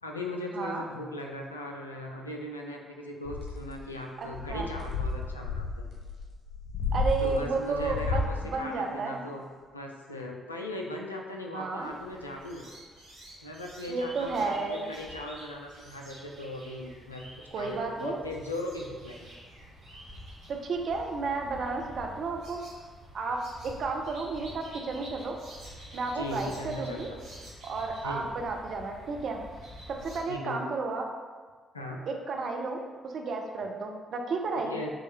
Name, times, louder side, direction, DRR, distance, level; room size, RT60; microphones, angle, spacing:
voice 1, 0.0-5.7 7.2-9.4 9.7-12.7 13.4-17.3 17.6-19.3 26.1-27.2 28.0-28.3 30.3-30.7 31.7-32.0 34.7-34.9, left 1 dB, 85° left, 1 dB, 0.3 m, -38 dB
voice 2, 0.5-0.8 4.2-4.7 6.9-9.2 11.5-11.9 13.9-14.8 17.5-18.2 20.5-22.6 23.1-25.4 25.9-27.1 27.6-29.4 29.9-31.1 32.0-34.7, right 4 dB, 50° right, 2 dB, 0.5 m, -32 dB
sound 1, 3.2-3.8 4.3-8.4, left 3 dB, 55° left, 0.7 m, -32 dB
sound 2, 11.8-30.2, equal, 70° right, 1.3 m, -48 dB
6.1 x 2.2 x 2.9 m, 1.5 s
figure-of-eight pair, 40°, 0 cm